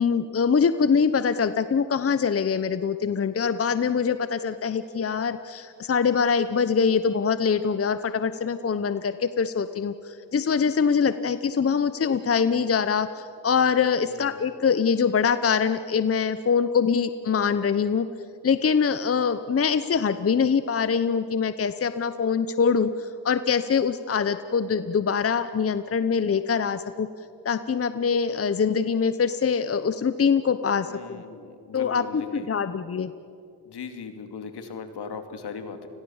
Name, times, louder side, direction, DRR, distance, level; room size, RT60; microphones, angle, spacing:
voice 1, 0.0-18.1 18.4-27.1 27.4-31.2 31.7-33.1, left 6 dB, 35° left, 12 dB, 0.9 m, -24 dB
voice 2, 13.9-14.4 30.8-32.5 33.7-35.9, left 5 dB, 70° left, 7 dB, 2.7 m, -39 dB
29.5 x 21.5 x 7.2 m, 2.6 s
cardioid pair, 80°, 41 cm